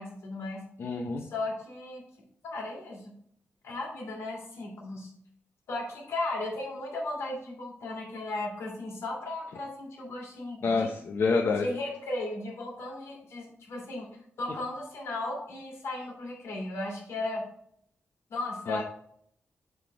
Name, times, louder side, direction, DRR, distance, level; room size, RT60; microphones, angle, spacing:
voice 1, 0.0-0.6 1.2-2.0 2.4-3.1 3.6-5.1 5.7-10.9 11.6-14.1 14.4-17.5 18.3-18.8, left 2 dB, 90° left, -1 dB, 2.9 m, -36 dB
voice 2, 0.8-1.2 10.6-11.7 18.7-18.8, left 4 dB, 65° left, 2 dB, 0.8 m, -27 dB
8.0 x 4.2 x 4.8 m, 0.65 s
wide cardioid pair, 125°, 4 cm